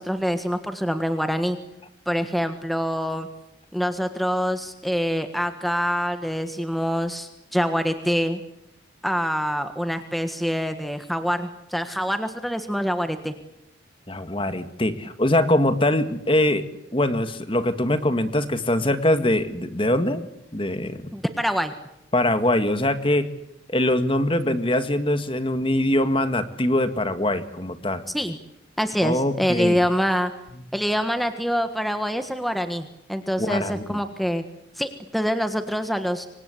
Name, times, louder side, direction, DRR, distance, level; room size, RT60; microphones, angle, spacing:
voice 1, 0.0-1.6 2.1-3.3 3.7-8.4 9.0-13.3 21.1-21.7 28.1-28.4 28.8-30.3 30.7-34.4 34.8-36.3, equal, ahead, 8 dB, 1.5 m, -25 dB
voice 2, 14.1-16.6 16.9-20.2 20.5-21.1 22.1-23.3 23.7-28.0 29.0-29.8 33.4-33.8, left 1 dB, 25° left, 10 dB, 1.8 m, -23 dB
27.0 x 25.0 x 8.5 m, 0.82 s
head